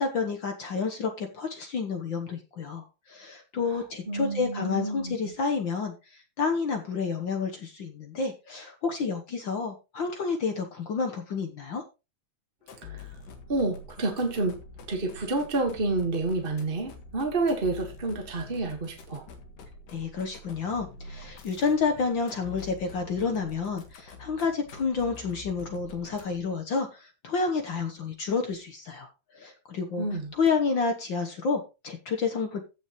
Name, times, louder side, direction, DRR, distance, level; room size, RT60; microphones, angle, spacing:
voice 1, 0.0-11.8 19.9-29.1 29.3-30.1 30.3-32.6, left 5 dB, 60° left, 4 dB, 1.2 m, -30 dB
voice 2, 3.7-5.1 12.8-13.1 13.5-14.6 14.9-19.3 30.0-30.3, right 2 dB, 30° right, 3 dB, 1.1 m, -29 dB
sound 1, 12.6-26.6, left 3 dB, 80° left, 3.3 m, -46 dB
15.5 x 6.6 x 3.1 m, 0.28 s
omnidirectional pair, 3.6 m